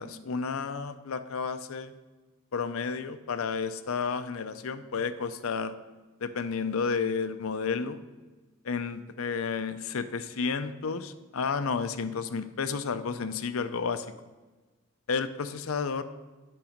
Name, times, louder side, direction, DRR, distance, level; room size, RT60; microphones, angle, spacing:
voice 1, 0.0-1.9 2.5-5.7 6.2-8.0 8.6-14.1 15.1-16.0, left 5 dB, 80° left, 11 dB, 0.5 m, -31 dB
8.6 x 6.0 x 5.2 m, 1.2 s
head